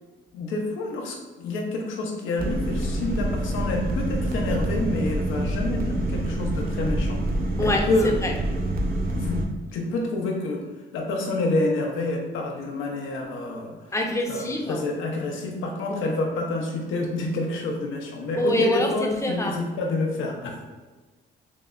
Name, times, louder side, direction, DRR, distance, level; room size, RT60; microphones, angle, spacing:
voice 1, 0.3-7.2 7.6-8.1 9.1-9.4 9.7-10.6 10.9-13.8 14.3-20.6, left 2 dB, 80° left, 1 dB, 0.7 m, -28 dB
sound 1, 2.4-9.5, right 1 dB, 50° right, 0.6 m, -26 dB
voice 2, 13.9-14.8 15.9-16.0 18.4-19.6, left 1 dB, 15° left, 1 dB, 0.7 m, -25 dB
5.9 x 2.1 x 2.4 m, 1.3 s
cardioid pair, 90°, 20 cm